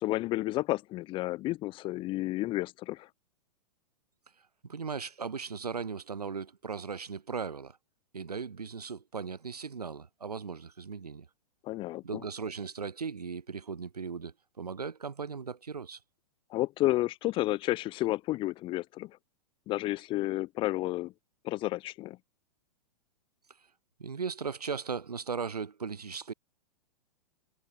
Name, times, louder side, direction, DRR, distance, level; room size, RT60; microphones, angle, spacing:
voice 1, 0.0-3.1 11.6-12.2 16.5-19.1 19.7-21.1 21.4-22.2, left 17 dB, 25° left, 0.8 m, -31 dB
voice 2, 4.6-7.8 8.1-11.3 12.0-16.0 24.0-26.3, right 5 dB, 75° right, 2.3 m, -37 dB
figure-of-eight pair, 105°, 20 cm